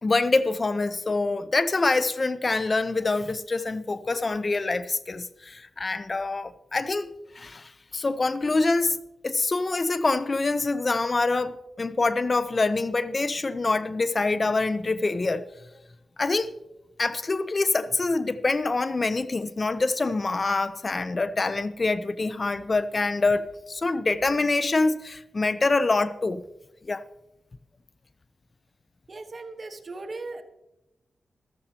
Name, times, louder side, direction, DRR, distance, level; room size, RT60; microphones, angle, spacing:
voice 1, 0.0-7.1 7.4-9.0 9.2-15.5 16.2-16.5 17.0-26.4 26.9-27.0, left 3 dB, 45° left, 0.6 m, -25 dB
voice 2, 29.1-30.4, right 3 dB, 50° right, 1.4 m, -38 dB
14.0 x 13.5 x 2.9 m
cardioid pair, 50°, 0 cm